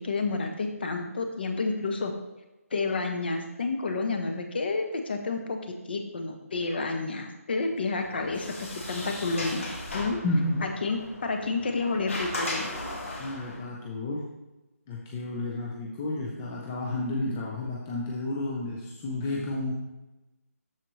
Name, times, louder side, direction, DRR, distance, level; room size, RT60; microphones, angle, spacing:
voice 1, 0.0-2.1 2.7-5.6 5.9-9.6 9.9-10.2 10.6-12.7, left 3 dB, 40° left, 4 dB, 0.9 m, -30 dB
Sliding door, 8.0-13.6, left 1 dB, 55° left, 2.0 m, -37 dB
voice 2, 10.2-10.7 13.2-14.2 14.9-19.7, left 2 dB, 10° left, -4 dB, 0.4 m, -31 dB
12.5 x 4.3 x 3.1 m, 1.0 s
hypercardioid pair, 170°, 8 cm